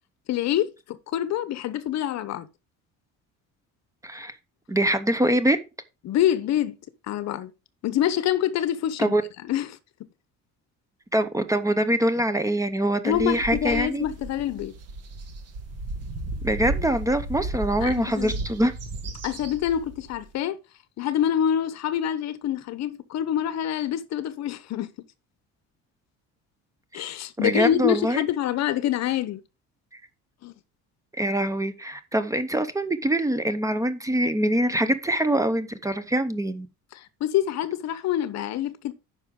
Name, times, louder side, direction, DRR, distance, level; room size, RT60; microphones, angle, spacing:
voice 1, 0.3-2.5 6.0-6.8 7.1-7.5 7.8-9.2 9.5-9.8 13.0-14.7 17.8-18.3 19.2-20.6 21.0-24.9 26.9-29.4 30.4-30.5 36.9-38.9, left 11 dB, 55° left, 0.9 m, -26 dB
voice 2, 4.0-4.4 4.7-5.6 9.0-9.2 11.1-14.0 16.4-18.7 27.4-28.2 31.1-36.7, right 1 dB, 10° right, 0.7 m, -24 dB
sound 1, 13.1-20.2, right 2 dB, 50° right, 2.0 m, -34 dB
9.6 x 6.1 x 3.7 m
cardioid pair, 145°, 32 cm